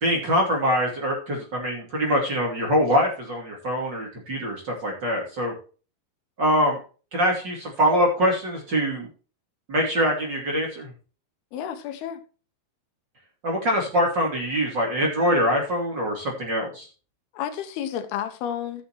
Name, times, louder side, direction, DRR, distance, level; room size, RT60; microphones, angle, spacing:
voice 1, 0.0-5.5 6.4-6.8 7.1-9.1 9.7-10.9 13.4-16.9, equal, 35° right, 2.7 m, -24 dB
voice 2, 11.5-12.2 17.3-18.9, left 9 dB, 80° left, 3.0 m, -31 dB
15.0 x 6.8 x 3.0 m
omnidirectional pair, 4.5 m